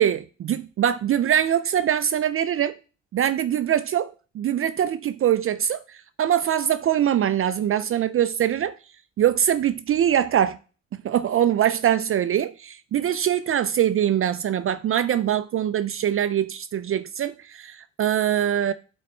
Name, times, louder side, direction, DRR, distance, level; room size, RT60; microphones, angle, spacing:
voice 1, 0.0-2.8 3.1-8.7 9.2-10.6 11.0-18.7, right 10 dB, 45° right, 0.4 m, -23 dB
8.4 x 4.0 x 4.3 m
cardioid pair, 90°, 30 cm